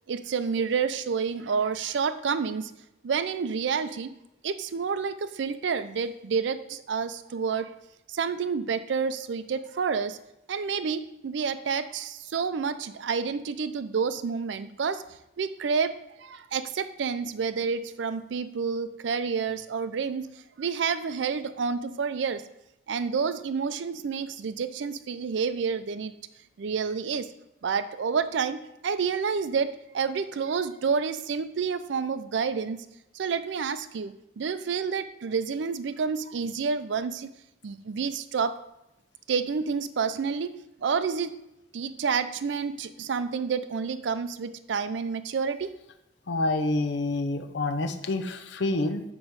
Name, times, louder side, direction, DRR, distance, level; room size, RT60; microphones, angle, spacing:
voice 1, 0.1-2.7 3.0-4.1 4.4-7.7 8.1-10.2 10.5-15.0 15.4-20.3 20.6-22.4 22.9-26.1 26.6-27.3 27.6-32.8 33.1-37.3 37.6-38.6 39.3-41.4 41.7-45.7, right 5 dB, 70° right, 12 dB, 0.4 m, -29 dB
voice 2, 46.3-49.0, left 2 dB, 70° left, 7 dB, 0.6 m, -27 dB
7.9 x 3.0 x 5.4 m, 0.87 s
head